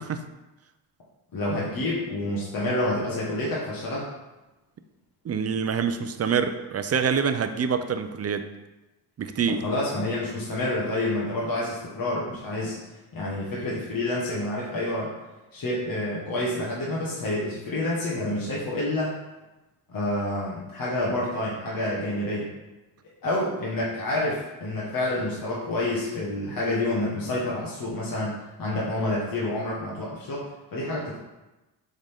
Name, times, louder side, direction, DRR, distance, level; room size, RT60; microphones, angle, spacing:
voice 1, 1.3-4.1 9.5-12.8 13.1-15.1 15.5-19.1 19.9-22.5 23.2-31.2, left 1 dB, 50° left, -6 dB, 1.6 m, -28 dB
voice 2, 5.2-8.5 9.2-9.6, right 6 dB, 35° right, 9 dB, 0.6 m, -26 dB
7.4 x 3.9 x 3.6 m, 1.1 s
cardioid pair, 80°, 44 cm